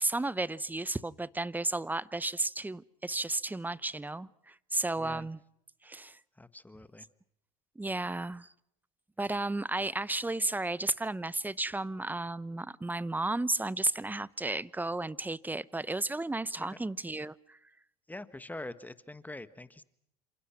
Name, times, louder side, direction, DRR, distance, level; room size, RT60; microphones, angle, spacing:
voice 1, 0.0-5.4 5.8-6.2 7.8-8.5 9.2-17.6, right 2 dB, 10° right, 19 dB, 0.9 m, -33 dB
voice 2, 5.0-5.3 6.4-7.1 16.6-16.7 18.1-19.8, left 2 dB, 10° left, 13 dB, 1.5 m, -44 dB
29.5 x 27.0 x 6.0 m, 0.75 s
supercardioid pair, 90°, 19 cm